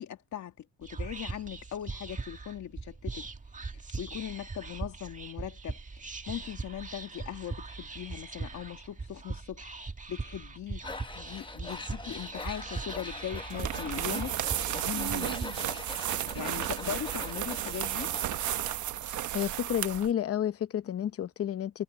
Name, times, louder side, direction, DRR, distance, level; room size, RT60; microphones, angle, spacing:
voice 1, 0.0-3.3 4.0-14.4 14.7-15.7 16.3-18.1, left 11 dB, 70° left, 2.0 m, -40 dB
Whispering, 0.8-15.4, right 3 dB, 25° right, 1.8 m, -40 dB
Tools, 10.8-18.8, left 3 dB, 15° left, 1.1 m, -43 dB
sound 1, 13.5-20.1, right 13 dB, 80° right, 1.1 m, -33 dB
voice 2, 19.0-21.8, left 10 dB, 50° left, 0.8 m, -31 dB
cardioid pair, 85°, 29 cm